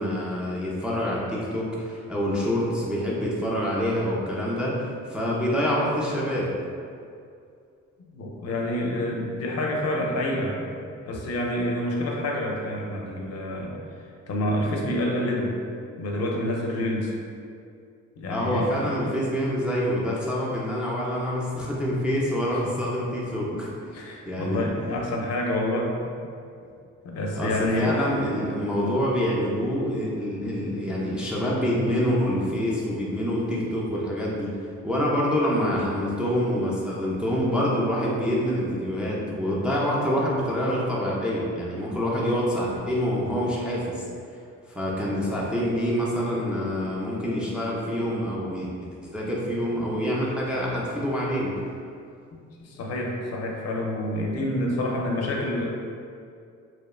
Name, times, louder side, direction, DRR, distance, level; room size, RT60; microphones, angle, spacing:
voice 1, 0.0-6.5 18.3-23.7 24.3-24.7 27.4-44.0 44.7-48.7 49.0-51.6, equal, 5° right, -6 dB, 0.4 m, -26 dB
voice 2, 8.1-10.8 11.1-13.7 14.3-15.5 16.0-17.1 18.2-19.0 23.5-23.6 23.9-26.2 27.0-28.2 52.6-55.6, left 1 dB, 55° left, -1 dB, 0.5 m, -28 dB
2.8 x 2.1 x 2.3 m, 2.4 s
cardioid pair, 90°, 30 cm